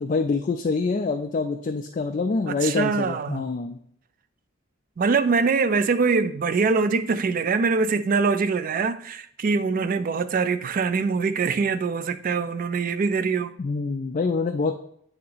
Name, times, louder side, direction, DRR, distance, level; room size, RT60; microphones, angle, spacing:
voice 1, 0.0-3.8 13.6-14.7, left 4 dB, 40° left, 0.3 m, -26 dB
voice 2, 2.5-3.4 5.0-13.5, right 4 dB, 40° right, 0.3 m, -23 dB
8.5 x 2.8 x 3.9 m
head